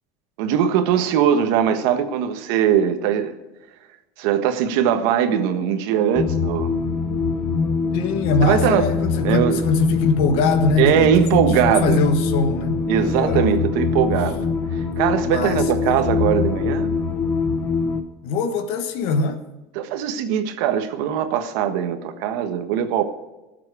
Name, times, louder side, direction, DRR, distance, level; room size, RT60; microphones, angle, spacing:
voice 1, 0.4-3.3 4.2-6.7 8.4-8.8 9.2-9.6 10.8-12.0 12.9-14.5 14.7-16.9 19.7-23.0, right 9 dB, 65° right, 8 dB, 1.5 m, -20 dB
sound 1, 6.2-18.0, left 4 dB, 20° left, 0.9 m, -23 dB
voice 2, 7.9-11.1 11.8-13.4 15.3-15.9 18.2-19.4, left 4 dB, 55° left, 8 dB, 1.3 m, -22 dB
19.0 x 7.7 x 4.9 m, 1.0 s
cardioid pair, 165°, 12 cm